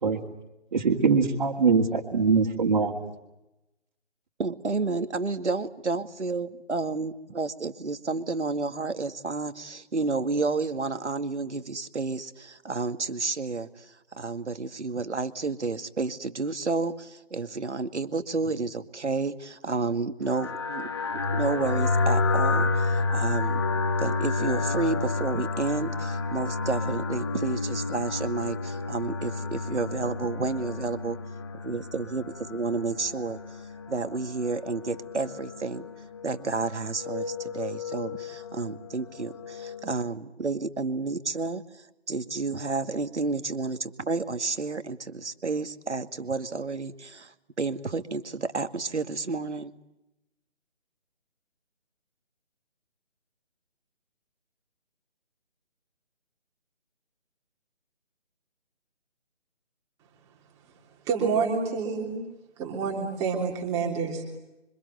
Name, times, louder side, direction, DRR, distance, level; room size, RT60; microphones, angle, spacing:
voice 1, 0.7-3.1, right 5 dB, 40° right, -4 dB, 2.9 m, -23 dB
voice 2, 4.4-20.9 21.3-23.6 24.0-31.2 31.6-33.4 33.9-35.9 36.2-47.3 47.6-49.7, right 3 dB, 85° right, 9 dB, 2.3 m, -31 dB
sound 1, 20.3-40.0, left 3 dB, 25° left, 1.2 m, -30 dB
voice 3, 61.1-62.1 62.6-64.4, right 5 dB, 10° right, 0 dB, 3.1 m, -28 dB
27.0 x 25.5 x 8.0 m, 0.93 s
figure-of-eight pair, 170°, 34 cm